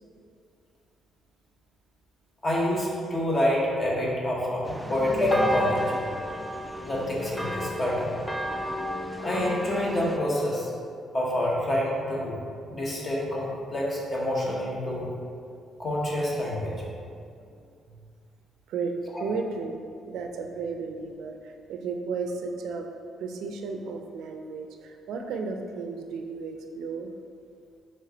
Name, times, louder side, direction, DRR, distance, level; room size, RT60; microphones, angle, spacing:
voice 1, 2.4-5.9 6.8-8.1 9.2-10.7 11.1-12.4 12.7-15.1 15.8-16.7 19.1-19.2, left 1 dB, 35° left, -3 dB, 1.0 m, -27 dB
sound 1, 4.6-10.2, left 1 dB, ahead, 0.3 m, -33 dB
voice 2, 19.2-22.9 23.2-27.1, right 4 dB, 85° right, 3 dB, 0.4 m, -34 dB
4.3 x 3.2 x 3.8 m, 2.4 s
cardioid pair, 90°, 0 cm